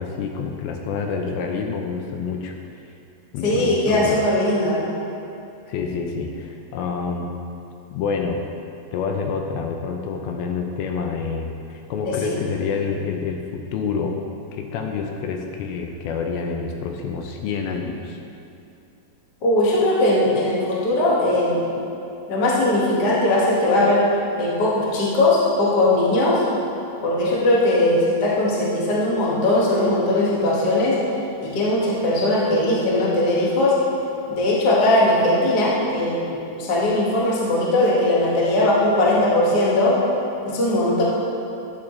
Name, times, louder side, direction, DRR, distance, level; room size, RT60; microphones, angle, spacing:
voice 1, 0.0-2.5 3.3-4.2 5.7-7.3 7.9-8.4 8.9-14.2 14.5-18.2, left 5 dB, 80° left, 3 dB, 2.3 m, -27 dB
voice 2, 3.4-4.8 12.0-12.3 19.4-21.7 22.3-24.1 24.4-26.4 27.0-31.0 31.4-33.7 34.3-39.9 40.4-41.0, left 1 dB, 45° left, -6 dB, 1.3 m, -19 dB
13.0 x 9.0 x 3.2 m, 2.7 s
omnidirectional pair, 4.7 m